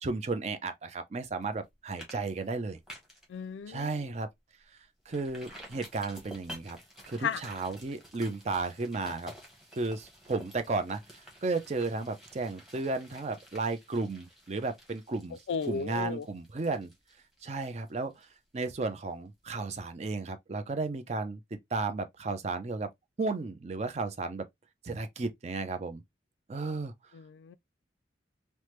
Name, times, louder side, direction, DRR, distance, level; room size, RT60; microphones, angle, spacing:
voice 1, 0.0-2.8 3.7-4.3 5.1-6.8 7.1-9.3 9.7-11.0 11.4-15.4 15.7-16.9 17.4-18.3 18.5-22.9 23.2-24.4 24.8-26.0 26.5-26.9, right 3 dB, 35° right, 0.4 m, -34 dB
sound 1, 1.4-1.6 2.0-2.2 2.5-3.3 3.7-3.8 4.2-4.3 5.1-18.7 19.0-19.1, equal, ahead, 1.0 m, -51 dB
voice 2, 3.3-3.9 7.2-7.4 15.5-16.3 27.1-27.6, left 6 dB, 90° left, 0.3 m, -34 dB
3.3 x 2.1 x 2.9 m
head